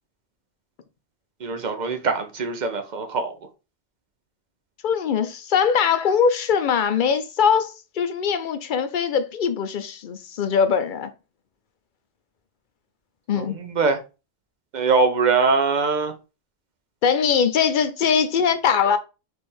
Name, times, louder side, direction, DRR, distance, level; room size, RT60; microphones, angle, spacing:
voice 1, 1.4-3.4 13.3-14.0 14.7-16.1, right 4 dB, 45° right, 0.8 m, -22 dB
voice 2, 4.8-11.1 13.3-13.6 17.0-19.0, left 7 dB, 55° left, 0.6 m, -21 dB
3.5 x 3.3 x 4.3 m
omnidirectional pair, 1.1 m